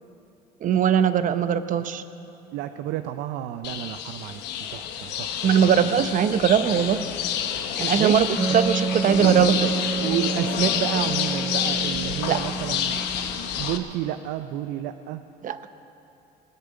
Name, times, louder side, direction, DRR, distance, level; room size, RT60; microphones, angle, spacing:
voice 1, 0.6-2.0 5.4-7.0 7.8-8.3 8.5-9.5 12.3-12.4 15.4-15.6, right 8 dB, 50° right, 11 dB, 0.7 m, -20 dB
voice 2, 2.5-5.7 8.0-8.6 9.2-9.5 10.0-13.0 13.6-15.2, right 13 dB, 85° right, 9 dB, 0.5 m, -30 dB
sound 1, 3.6-13.8, left 9 dB, 90° left, 1.0 m, -28 dB
Wind instrument woodwind instrument, 8.4-13.8, right 5 dB, 15° right, 0.4 m, -30 dB
20.5 x 6.8 x 8.9 m, 2.8 s
cardioid pair, 110°, 17 cm